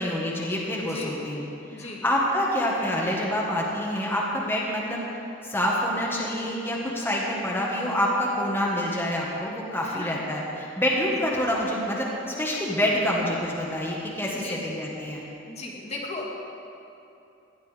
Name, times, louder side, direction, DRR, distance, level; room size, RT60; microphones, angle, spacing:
voice 1, 0.0-1.4 1.7-5.0 5.4-12.1 12.4-15.2, equal, 10° left, -4 dB, 1.6 m, -27 dB
voice 2, 0.8-1.2 1.7-2.0 9.8-10.2 14.2-14.6 15.5-16.3, left 2 dB, 35° left, -2 dB, 1.8 m, -37 dB
17.5 x 10.5 x 5.1 m, 2.8 s
head